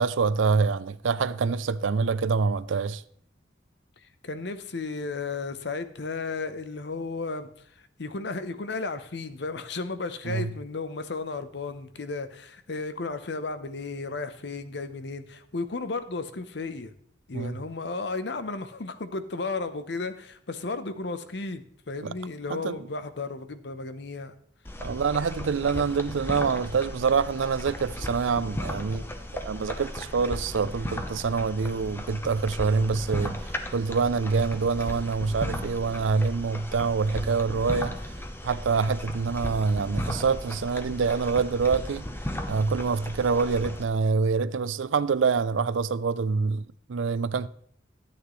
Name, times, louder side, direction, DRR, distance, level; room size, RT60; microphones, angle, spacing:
voice 1, 0.0-3.0 10.3-10.5 17.3-17.5 22.0-22.1 22.5-22.8 24.8-29.1 29.3-33.4 33.7-38.0 38.4-42.1 42.5-46.6 46.9-47.5, right 5 dB, 85° right, 0.5 m, -26 dB
voice 2, 4.0-7.7 8.0-16.9 17.3-24.3, left 3 dB, 65° left, 0.8 m, -34 dB
sound 1, 24.6-43.8, left 1 dB, 10° left, 0.8 m, -36 dB
13.0 x 8.7 x 3.1 m
head